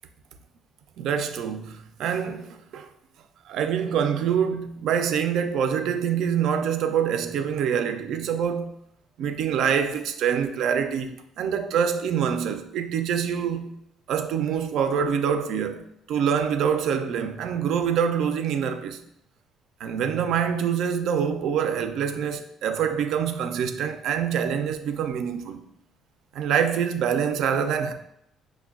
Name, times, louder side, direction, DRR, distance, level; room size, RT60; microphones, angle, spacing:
voice 1, 1.0-2.9 3.5-8.7 9.2-13.7 14.1-19.0 19.8-25.6 26.3-27.9, right 7 dB, 70° right, 0.4 m, -25 dB
5.6 x 2.2 x 2.3 m
supercardioid pair, 70°, 0 cm